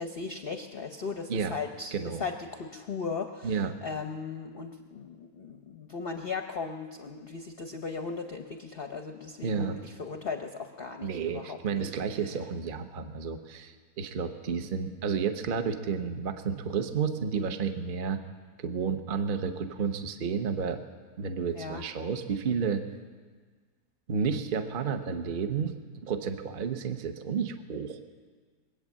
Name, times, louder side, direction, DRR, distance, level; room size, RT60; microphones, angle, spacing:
voice 1, 0.0-1.9 2.2-11.9 12.2-12.3 21.5-21.8, left 5 dB, 50° left, 5 dB, 0.7 m, -37 dB
voice 2, 1.9-2.2 3.4-3.8 9.4-9.8 11.0-18.2 18.6-20.8 21.2-22.8 24.1-28.0, right 6 dB, 40° right, 8 dB, 0.8 m, -31 dB
22.5 x 8.8 x 7.3 m, 1.5 s
omnidirectional pair, 1.9 m